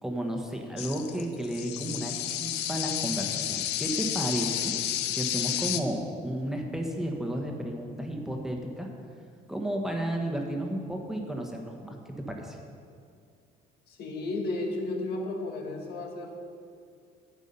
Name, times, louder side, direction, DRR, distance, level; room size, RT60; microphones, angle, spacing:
voice 1, 0.0-4.7 5.1-8.9 9.5-12.6, right 1 dB, 5° right, 1 dB, 1.3 m, -33 dB
sound 1, 0.8-5.8, left 12 dB, 85° left, 0.6 m, -31 dB
voice 2, 13.9-16.3, left 2 dB, 70° left, 1 dB, 2.0 m, -33 dB
11.0 x 8.2 x 5.5 m, 2.3 s
cardioid pair, 110°, 17 cm